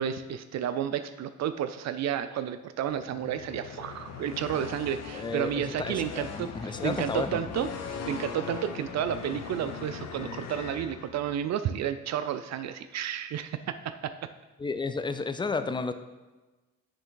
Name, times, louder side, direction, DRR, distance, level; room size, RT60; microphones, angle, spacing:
voice 1, 0.0-7.7 8.1-13.6 14.0-14.3, right 9 dB, 60° right, 10 dB, 0.5 m, -31 dB
sound 1, 2.9-11.5, left 6 dB, 60° left, 0.8 m, -40 dB
voice 2, 5.1-7.4 14.6-15.9, left 4 dB, 15° left, 9 dB, 0.5 m, -32 dB
9.8 x 3.4 x 3.8 m, 1.2 s
cardioid pair, 90°, 30 cm